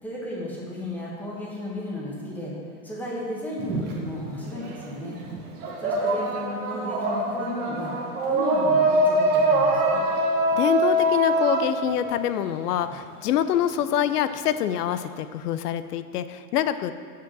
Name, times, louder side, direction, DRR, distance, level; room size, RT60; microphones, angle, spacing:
voice 1, 0.0-2.5 2.8-5.2 5.8-7.9 8.3-10.0, left 1 dB, 5° left, -5 dB, 1.2 m, -34 dB
sound 1, 3.6-4.8 5.2-12.9, right 1 dB, 20° right, 1.0 m, -24 dB
voice 2, 10.5-16.9, left 10 dB, 80° left, 12 dB, 0.6 m, -25 dB
7.6 x 5.9 x 7.4 m, 2.2 s
supercardioid pair, 165°, 45 cm